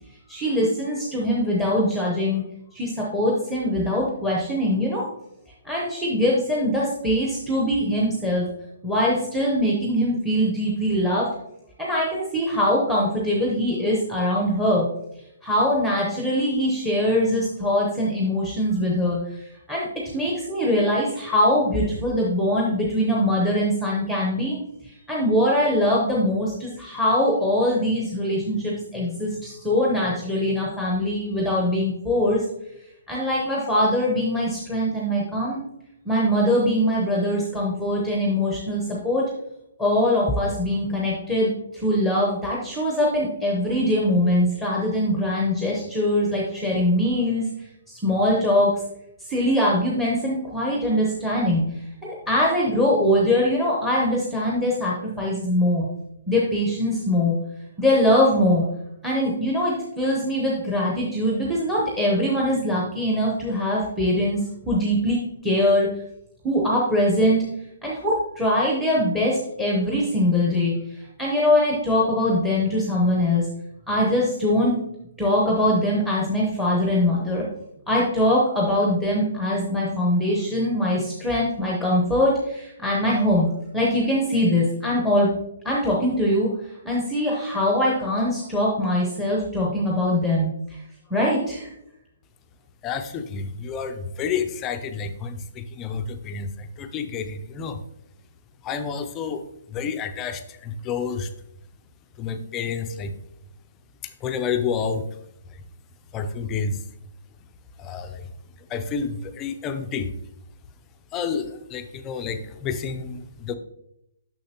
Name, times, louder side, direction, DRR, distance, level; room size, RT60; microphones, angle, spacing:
voice 1, 0.3-2.4 2.7-5.1 5.6-8.5 8.8-11.3 11.8-14.8 15.4-19.9 20.1-24.5 25.1-32.4 33.1-35.6 36.1-39.2 39.8-41.5 41.8-47.4 47.9-48.7 49.3-51.6 52.0-55.9 56.3-57.3 57.8-58.6 59.0-65.9 66.4-67.4 67.8-70.7 71.2-73.5 73.9-74.8 75.2-77.4 77.9-83.5 83.7-85.3 85.6-86.5 86.8-90.8 91.1-91.7, left 1 dB, ahead, -4 dB, 0.8 m, -22 dB
voice 2, 92.8-97.8 98.6-101.3 102.2-103.1 104.0-105.1 105.5-105.6 106.1-106.8 107.8-108.3 108.6-110.1 111.1-113.5, left 6 dB, 15° left, 8 dB, 0.4 m, -30 dB
6.4 x 6.3 x 2.9 m, 0.79 s
hypercardioid pair, 170°, 0 cm